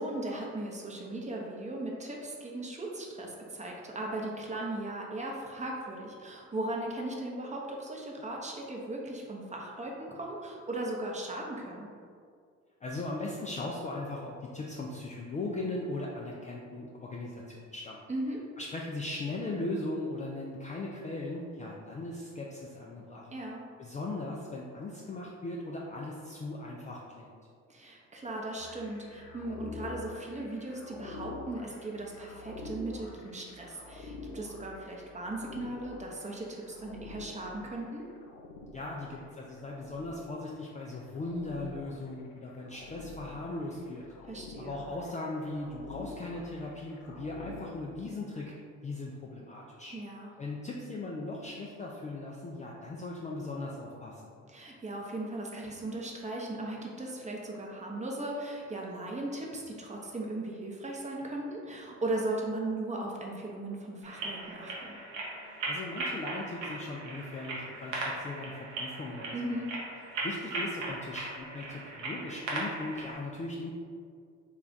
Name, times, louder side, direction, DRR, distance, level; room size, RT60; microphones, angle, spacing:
voice 1, 0.0-11.9 18.1-18.4 23.3-23.6 27.7-38.0 44.3-44.8 49.9-50.3 54.5-64.9 69.3-69.7, right 2 dB, 20° right, -1 dB, 0.7 m, -37 dB
voice 2, 12.8-18.0 18.6-23.3 23.8-27.3 38.7-44.0 44.6-48.5 48.8-49.9 50.4-54.2 65.7-69.6 70.2-73.7, left 2 dB, 20° left, -3 dB, 0.4 m, -38 dB
sound 1, 28.6-47.7, left 3 dB, 70° left, 0.5 m, -47 dB
sound 2, 64.0-73.1, right 2 dB, 85° right, 0.7 m, -38 dB
3.2 x 2.4 x 3.8 m, 2.2 s
hypercardioid pair, 50°, 37 cm